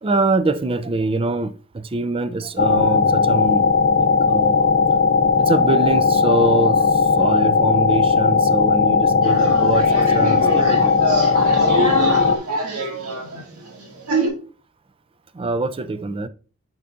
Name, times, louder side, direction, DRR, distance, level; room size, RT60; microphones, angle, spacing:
voice 1, 0.0-3.7 4.0-4.7 5.4-11.0 15.3-16.3, right 3 dB, 25° right, 0.4 m, -24 dB
sound 1, 2.6-12.4, left 5 dB, 45° left, 0.6 m, -17 dB
sound 2, 9.2-14.3, right 2 dB, 85° right, 2.1 m, -25 dB
8.9 x 5.6 x 2.5 m
head